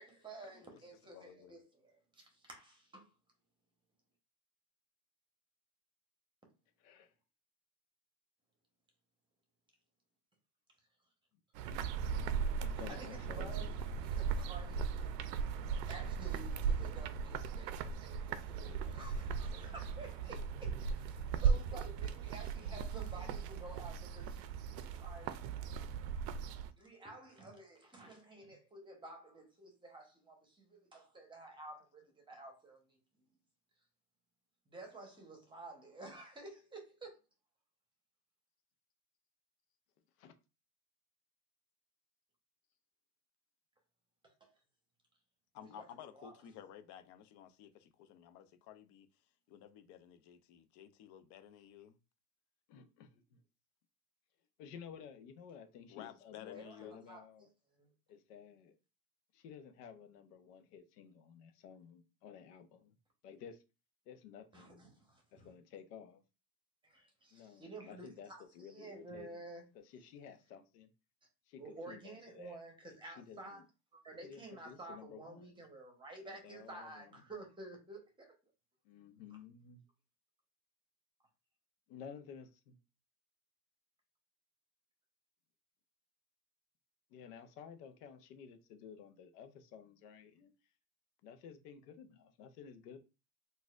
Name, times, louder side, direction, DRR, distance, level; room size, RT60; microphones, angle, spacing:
voice 1, 0.0-3.1 12.9-15.2 15.6-25.4 26.8-33.0 34.7-37.2 44.2-44.3 45.6-45.8 46.1-46.3 56.5-57.5 57.8-57.9 64.5-65.5 66.8-69.6 71.6-73.6 73.9-78.3, right 2 dB, 10° right, 0.9 m, -52 dB
voice 2, 1.1-1.6 18.6-20.1 20.3-20.8 21.7-21.8 45.5-49.1 49.5-52.0 55.9-57.1, left 10 dB, 40° left, 0.4 m, -55 dB
voice 3, 6.8-7.1 12.6-13.8 15.5-16.0 40.2-40.3 52.7-53.4 54.6-57.5 58.1-58.8 59.3-62.9 63.2-63.6 64.1-64.9 65.3-66.2 67.3-68.3 68.5-69.4 69.8-70.9 71.5-72.6 72.8-73.6 74.2-75.6 76.2-77.2 78.8-79.8 81.9-82.8 87.1-90.5 91.2-93.0, left 7 dB, 75° left, 0.8 m, -53 dB
sound 1, 11.5-26.7, right 6 dB, 85° right, 0.6 m, -37 dB
4.0 x 2.5 x 2.4 m
supercardioid pair, 125°, 48 cm